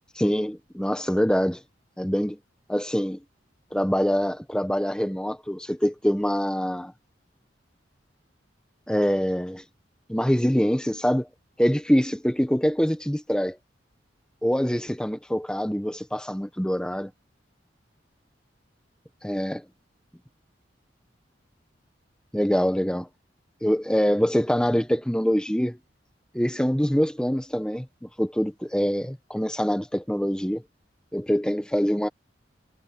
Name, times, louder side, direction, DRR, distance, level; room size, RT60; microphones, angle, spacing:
voice 1, 0.1-1.6 2.0-2.4 2.7-3.2 3.7-6.9 8.9-9.6 10.1-11.3 11.6-13.6 14.4-17.1 19.2-19.6 22.3-23.1 23.6-25.8 26.3-30.6 31.1-32.1, equal, 5° left, 1.2 m, -24 dB
head